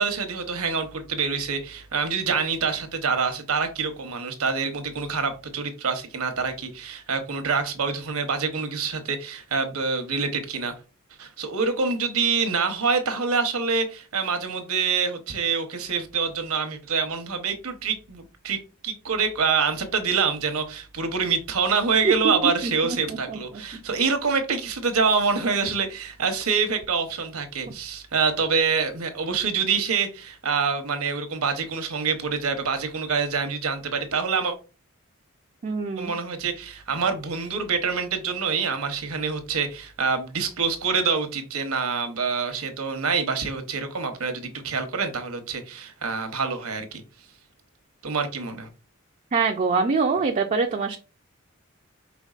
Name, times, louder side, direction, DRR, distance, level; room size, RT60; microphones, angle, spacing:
voice 1, 0.0-10.7 11.2-34.5 36.0-47.0 48.0-48.7, right 5 dB, 75° right, 0.9 m, -26 dB
voice 2, 35.6-36.1 49.3-51.0, right 4 dB, 35° right, 0.4 m, -23 dB
5.1 x 3.5 x 2.4 m
head